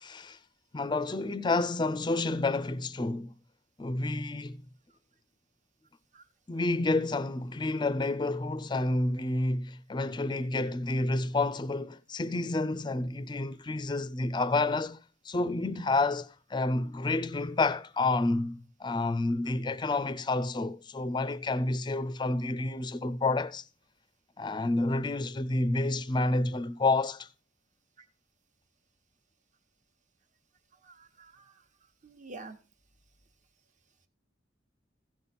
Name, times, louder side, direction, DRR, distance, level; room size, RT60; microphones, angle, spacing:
voice 1, 0.0-0.4 0.7-3.3 3.8-4.6 6.5-23.6 24.4-27.3, left 2 dB, 25° left, 0.5 m, -29 dB
voice 2, 30.9-31.5 32.0-32.5, right 3 dB, 40° right, 1.2 m, -47 dB
16.0 x 5.5 x 4.2 m
head